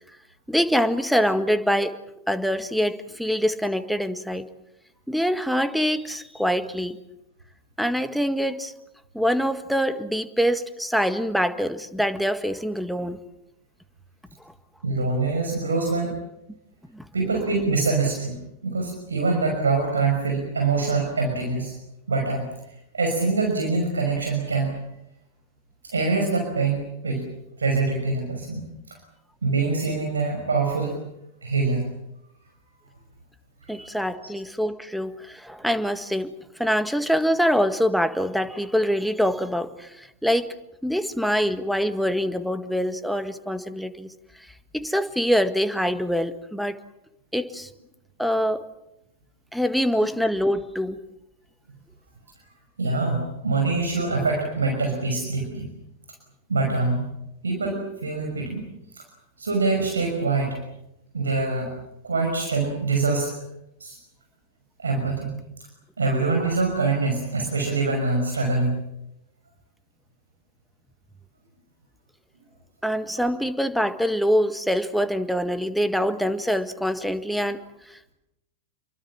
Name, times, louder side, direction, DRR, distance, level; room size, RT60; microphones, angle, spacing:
voice 1, 0.5-2.0 2.3-4.5 5.1-7.0 7.8-8.7 9.1-13.2 16.9-17.0 33.7-36.3 36.6-40.5 40.8-44.1 44.7-46.8 47.3-47.7 48.2-48.7 49.5-51.0 72.8-78.1, equal, ahead, 10 dB, 1.8 m, -24 dB
voice 2, 14.8-16.1 17.1-21.7 22.1-22.4 22.9-24.8 25.8-27.2 27.6-29.0 29.4-30.9 31.4-31.9 34.1-34.3 52.8-55.7 56.5-57.1 57.4-58.6 58.9-59.0 59.4-60.6 61.1-61.7 62.0-63.3 63.8-64.0 64.8-65.3 66.0-68.8, right 3 dB, 75° right, 2 dB, 5.9 m, -24 dB
29.5 x 23.0 x 7.4 m, 0.85 s
figure-of-eight pair, 90°, 0 cm